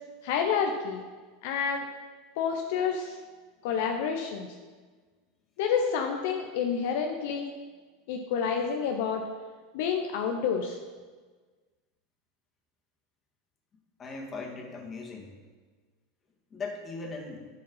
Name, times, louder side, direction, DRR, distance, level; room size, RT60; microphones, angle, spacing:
voice 1, 0.2-1.0 1.4-1.9 2.4-3.2 3.6-4.5 5.6-7.5 8.1-9.2 9.7-10.8, left 6 dB, 65° left, 3 dB, 0.8 m, -29 dB
voice 2, 14.0-15.3 16.5-17.5, left 3 dB, 30° left, 0 dB, 2.2 m, -38 dB
10.5 x 5.1 x 5.6 m, 1.4 s
hypercardioid pair, 90°, 0 cm